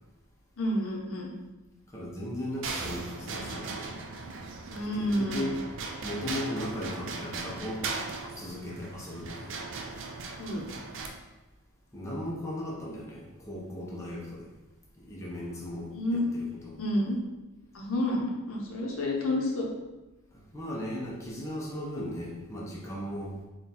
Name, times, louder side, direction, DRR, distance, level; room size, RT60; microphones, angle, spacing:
voice 1, 0.6-1.3 4.7-5.4 10.4-10.6 15.9-16.3 16.8-17.2 17.7-19.7, left 1 dB, 65° left, -1 dB, 0.7 m, -29 dB
voice 2, 1.9-3.9 4.9-5.6 6.0-7.8 8.4-9.5 11.9-14.5 15.0-16.8 20.5-23.4, left 1 dB, 15° left, -5 dB, 0.7 m, -37 dB
sound 1, 2.6-11.1, right 4 dB, 55° right, 0.4 m, -38 dB
3.8 x 2.3 x 4.1 m, 1.1 s
head